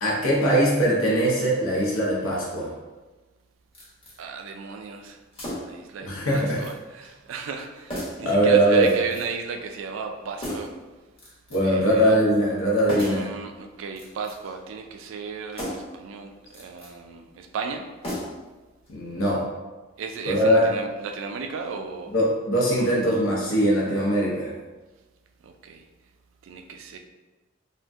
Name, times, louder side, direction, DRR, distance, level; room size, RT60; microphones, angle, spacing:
voice 1, 0.0-2.7 6.0-6.6 8.2-8.9 11.5-13.3 18.9-19.4 20.3-20.7 22.1-24.5, right 1 dB, 85° left, -4 dB, 0.6 m, -21 dB
sound 1, 3.7-4.2 5.3-5.8 6.3-6.8 7.0-7.1 7.9-8.3 8.8-9.4 10.4-10.8 11.2-11.8 12.9-13.3 13.9-14.6 15.5-16.0 16.5-16.9 18.0-18.6 18.9-19.0, left 1 dB, 30° left, 0.7 m, -35 dB
voice 2, 4.2-5.2 5.6-10.8 11.6-12.2 12.9-17.9 20.0-22.1 22.8-23.0 25.4-25.8 26.4-27.0, right 5 dB, 70° right, 6 dB, 0.3 m, -35 dB
2.5 x 2.1 x 3.4 m, 1.2 s
head